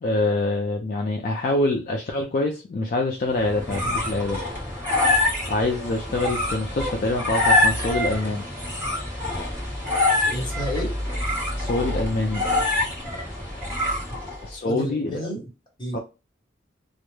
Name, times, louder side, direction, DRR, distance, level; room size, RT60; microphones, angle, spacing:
voice 1, 0.0-4.4 5.5-8.4 11.6-12.4 14.4-15.2 15.9-16.0, left 2 dB, 45° left, 1 dB, 0.3 m, -25 dB
sound 1, 3.3-14.5, left 2 dB, 15° right, 1.1 m, -25 dB
voice 2, 10.2-10.9 14.5-15.5 15.8-16.0, equal, 25° left, -2 dB, 1.0 m, -31 dB
2.2 x 2.0 x 3.0 m, 0.29 s
head